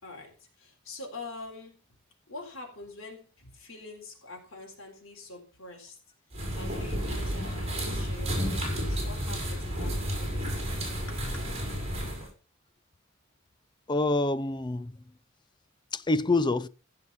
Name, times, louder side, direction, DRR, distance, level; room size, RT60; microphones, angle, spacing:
voice 1, 0.0-1.8 2.3-6.0 6.5-10.7 11.1-11.5, left 3 dB, 70° left, 3.9 m, -45 dB
sound 1, 6.3-12.3, equal, 30° right, 5.2 m, -31 dB
voice 2, 13.9-15.0 15.9-16.7, left 2 dB, 20° left, 0.5 m, -26 dB
15.5 x 5.7 x 5.6 m
head